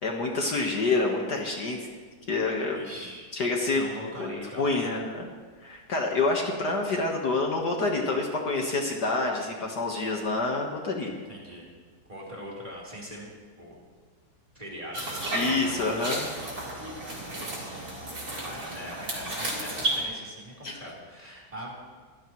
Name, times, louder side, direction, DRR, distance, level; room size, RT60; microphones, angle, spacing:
voice 1, 0.0-1.8 2.3-2.8 3.3-3.8 4.2-4.3 4.6-5.3 5.6-11.2 15.3-16.3 20.6-20.8, left 3 dB, 55° left, 0 dB, 2.0 m, -27 dB
voice 2, 2.7-3.4 3.7-4.7 11.3-11.7 12.1-13.3 13.6-13.8 14.5-16.2 17.0-17.8 18.4-21.7, equal, 20° right, -4 dB, 4.3 m, -42 dB
sound 1, 14.9-20.0, right 1 dB, 45° right, 4.5 m, -33 dB
24.5 x 16.5 x 3.2 m, 1.5 s
omnidirectional pair, 2.2 m